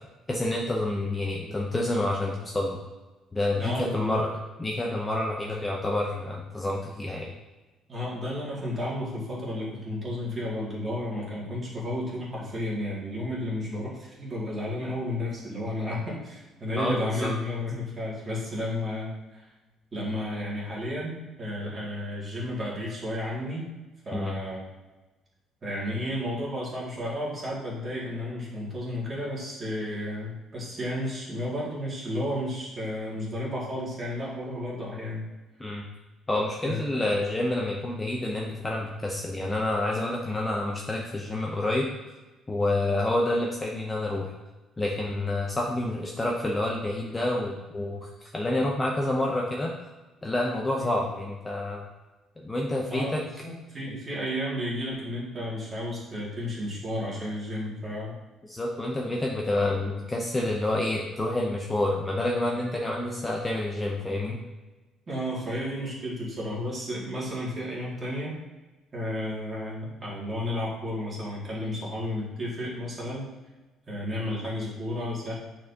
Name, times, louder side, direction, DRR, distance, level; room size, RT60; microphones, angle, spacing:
voice 1, 0.3-2.8 3.3-4.3 4.6-7.3 16.8-17.3 24.1-24.3 35.6-35.9 36.3-41.8 42.5-44.3 44.8-49.7 50.2-51.8 52.4-53.2 58.4-64.4, left 1 dB, 15° left, -1 dB, 0.6 m, -28 dB
voice 2, 3.6-4.2 7.9-19.5 19.9-23.7 24.0-24.6 25.6-35.2 36.6-37.2 50.8-51.1 52.9-58.1 65.1-68.3 68.9-73.3 73.9-75.3, left 1 dB, 25° right, -6 dB, 2.1 m, -32 dB
9.0 x 4.3 x 2.8 m, 1.1 s
cardioid pair, 160°, 0 cm